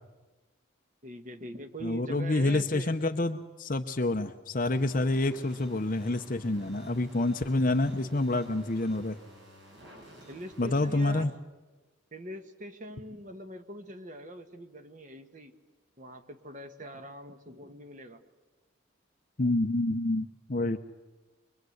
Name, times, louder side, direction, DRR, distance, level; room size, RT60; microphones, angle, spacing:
voice 1, 1.0-3.0 10.3-11.3 12.1-15.5 16.0-18.2, right 1 dB, 40° right, 8 dB, 1.5 m, -43 dB
voice 2, 1.8-9.2 10.6-11.3 19.4-20.8, left 2 dB, 40° left, 6 dB, 0.8 m, -28 dB
sound 1, 4.7-11.2, equal, 60° right, 6.8 m, -52 dB
24.0 x 22.5 x 7.9 m, 1.2 s
head